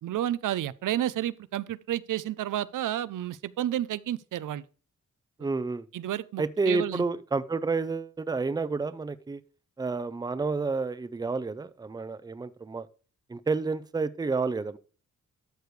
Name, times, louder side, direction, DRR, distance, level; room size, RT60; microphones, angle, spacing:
voice 1, 0.0-4.7 5.4-5.5 5.9-7.0, right 12 dB, 85° right, 0.5 m, -31 dB
voice 2, 5.4-5.9 6.4-9.4 9.8-12.9 13.3-14.8, right 4 dB, 15° right, 0.5 m, -30 dB
13.0 x 6.7 x 3.2 m
wide cardioid pair, 115°, 31 cm